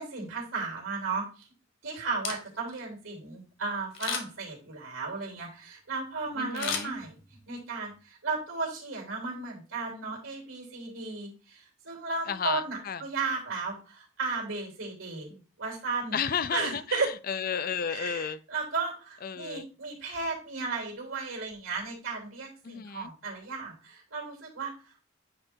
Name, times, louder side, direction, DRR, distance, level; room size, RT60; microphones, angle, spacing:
voice 1, 0.0-1.5 1.8-7.1 7.5-16.2 16.5-17.1 17.9-25.1, right 4 dB, 75° right, 3.1 m, -35 dB
Camera, 2.1-2.8 3.9-4.5 6.5-7.5 7.9-8.0, left 6 dB, 70° left, 1.7 m, -35 dB
voice 2, 6.4-6.9 12.3-13.0 16.1-18.4 19.2-19.7 22.6-23.1, left 7 dB, 45° left, 0.5 m, -32 dB
9.7 x 3.4 x 4.4 m
head